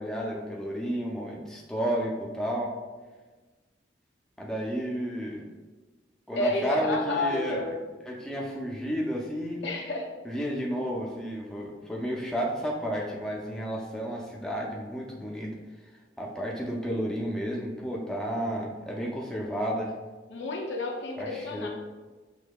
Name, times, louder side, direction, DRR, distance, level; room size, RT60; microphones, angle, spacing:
voice 1, 0.0-2.7 4.4-5.4 6.3-7.6 8.1-9.6 10.2-15.5 16.2-19.9 21.2-21.7, equal, 5° left, -3 dB, 0.5 m, -32 dB
voice 2, 6.3-7.7 9.6-10.2 20.3-21.7, left 2 dB, 70° left, 1 dB, 0.6 m, -30 dB
6.4 x 2.7 x 2.3 m, 1.3 s
head